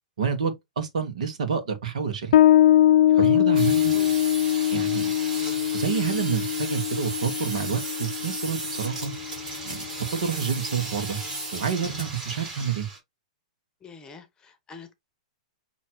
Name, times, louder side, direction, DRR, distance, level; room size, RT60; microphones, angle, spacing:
voice 1, 0.2-2.3 3.2-4.0 4.7-5.1 5.7-9.1 9.6-9.8 10.1-11.2 11.5-12.9, right 7 dB, 70° right, 1.3 m, -28 dB
Bass guitar, 2.3-9.5, left 12 dB, 60° left, 0.4 m, -22 dB
sound 1, 3.5-13.0, right 2 dB, 20° right, 2.8 m, -35 dB
voice 2, 13.8-14.9, left 5 dB, 20° left, 0.9 m, -46 dB
5.6 x 2.9 x 3.0 m
hypercardioid pair, 115°, 4 cm